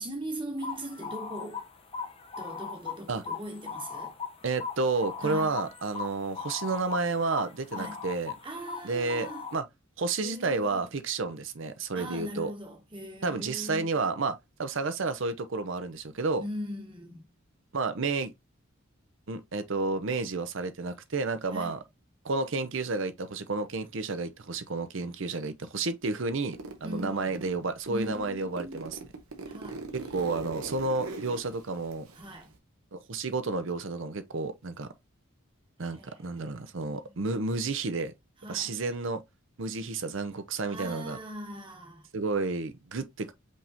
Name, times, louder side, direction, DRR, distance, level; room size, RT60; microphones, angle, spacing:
voice 1, 0.0-1.6 2.4-4.1 5.2-5.6 7.7-8.0 8.4-9.5 10.2-10.9 11.9-14.0 16.4-17.3 21.5-21.8 26.8-27.4 27.9-28.9 29.5-29.9 32.1-32.5 35.8-37.2 38.4-38.7 40.7-42.1, equal, 25° right, 1.3 m, -40 dB
sound 1, 0.6-9.6, left 5 dB, 25° left, 0.6 m, -39 dB
voice 2, 4.4-8.3 8.8-9.6 10.0-12.5 13.2-16.4 17.7-18.3 19.3-21.8 22.2-28.9 29.9-32.1 32.9-34.9 35.8-38.1 38.5-39.2 39.6-41.2 42.1-43.3, right 3 dB, 60° right, 0.7 m, -31 dB
Zipper (clothing), 26.5-27.5 27.9-32.6, right 3 dB, 80° right, 1.1 m, -41 dB
5.3 x 3.5 x 2.7 m
head